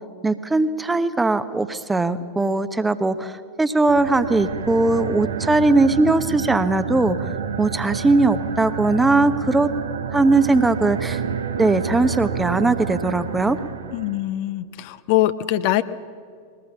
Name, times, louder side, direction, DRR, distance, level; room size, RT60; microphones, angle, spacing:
voice 1, 0.2-7.2 7.6-9.7 10.1-11.2 11.6-13.6, right 2 dB, 10° right, 12 dB, 0.9 m, -19 dB
sound 1, 3.8-14.3, right 6 dB, 70° right, 1.1 m, -29 dB
voice 2, 13.9-15.8, left 14 dB, 45° left, 12 dB, 0.7 m, -22 dB
21.5 x 19.0 x 7.1 m, 2.2 s
figure-of-eight pair, 90°, 0 cm